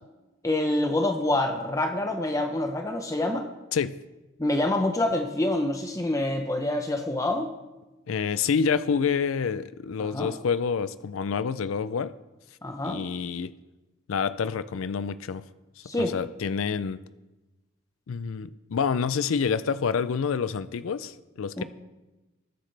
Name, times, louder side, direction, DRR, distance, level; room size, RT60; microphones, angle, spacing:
voice 1, 0.4-3.5 4.4-7.5 10.0-10.3 12.6-13.0 15.8-16.1 21.6-21.7, left 1 dB, 15° left, 5 dB, 0.7 m, -26 dB
voice 2, 8.1-12.1 12.8-13.5 14.1-15.4 16.0-17.0 18.1-21.6, left 6 dB, 65° left, 15 dB, 0.4 m, -27 dB
20.0 x 9.8 x 3.3 m, 1.1 s
head